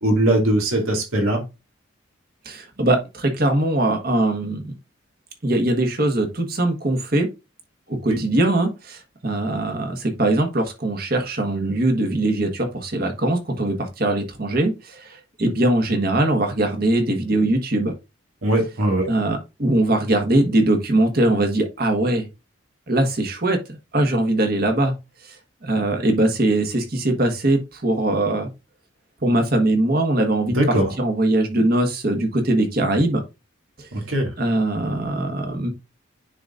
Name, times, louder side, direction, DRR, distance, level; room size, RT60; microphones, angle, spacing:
voice 1, 0.0-1.4 8.1-8.2 18.4-19.1 30.5-30.9 33.9-34.3, right 1 dB, 90° right, 2.3 m, -20 dB
voice 2, 2.4-4.7 5.4-7.3 7.9-17.9 19.1-22.3 22.9-24.9 25.2-25.4 25.6-28.5 29.2-30.6 31.0-33.2 33.8-33.9 34.4-35.7, right 1 dB, 45° right, 1.4 m, -21 dB
9.8 x 4.0 x 2.5 m
head